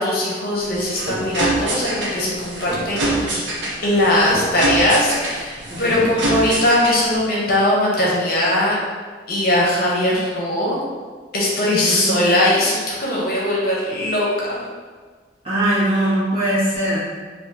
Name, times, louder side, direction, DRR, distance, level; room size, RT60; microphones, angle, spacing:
voice 1, 0.0-3.4 3.8-8.7 9.3-10.8 11.3-14.6, left 1 dB, 50° left, -5 dB, 0.7 m, -20 dB
sound 1, 0.6-7.2, right 2 dB, 75° right, 0.7 m, -25 dB
voice 2, 5.7-6.0 11.6-12.1 15.4-17.0, right 1 dB, 30° right, -11 dB, 1.3 m, -21 dB
2.7 x 2.6 x 3.6 m, 1.5 s
head